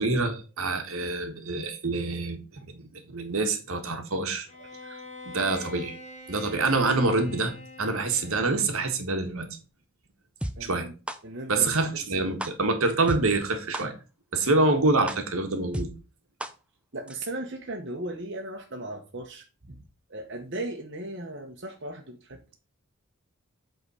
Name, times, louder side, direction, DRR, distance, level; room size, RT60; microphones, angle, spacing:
voice 1, 0.0-4.5 5.2-6.0 6.3-7.5 7.8-9.5 10.6-10.9 11.5-13.9 14.3-15.9, right 3 dB, 70° right, 6 dB, 1.5 m, -26 dB
Bowed string instrument, 4.5-8.9, left 2 dB, 30° left, 1.4 m, -44 dB
sound 1, 10.4-10.5 11.1-11.2 11.7-11.8 12.4-12.5 13.1-13.2 13.7-13.8 14.4-14.5 15.1-15.2 15.7-15.9 16.4-16.5 17.1-17.2, right 1 dB, 5° right, 0.5 m, -31 dB
voice 2, 10.6-10.9 11.2-12.3 16.9-19.8 20.1-22.4, right 1 dB, 50° right, 1 dB, 1.1 m, -37 dB
8.1 x 3.9 x 5.5 m, 0.33 s
head